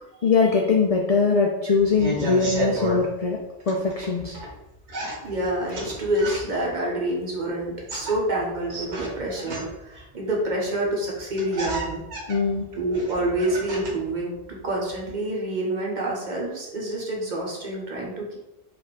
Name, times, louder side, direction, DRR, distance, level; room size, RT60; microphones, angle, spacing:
voice 1, 0.2-3.4 3.7-4.4 12.3-12.6, left 4 dB, 60° left, 0 dB, 0.4 m, -21 dB
sound 1, 1.8-3.0 3.6-4.5 4.9-6.7 7.7-10.0 10.8-10.9 11.2-14.1 14.4-15.1, right 1 dB, 90° right, 1.3 m, -32 dB
voice 2, 5.2-12.0 12.7-18.4, right 1 dB, 45° right, -2 dB, 0.9 m, -27 dB
3.2 x 2.5 x 4.0 m, 0.97 s
omnidirectional pair, 1.1 m